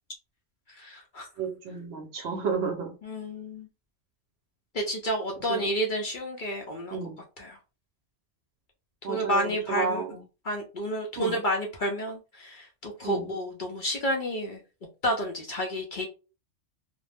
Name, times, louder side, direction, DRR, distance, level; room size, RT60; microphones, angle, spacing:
voice 1, 0.7-1.3 3.0-3.7 4.7-7.0 7.4-7.6 9.1-10.0 10.4-14.6 15.0-16.1, equal, 55° left, 0.6 m, -30 dB
voice 2, 1.4-3.0 5.5-5.7 6.9-7.2 9.0-10.2 11.2-11.4 13.0-13.3, right 5 dB, 65° right, 0.8 m, -32 dB
2.5 x 2.0 x 3.3 m
omnidirectional pair, 1.3 m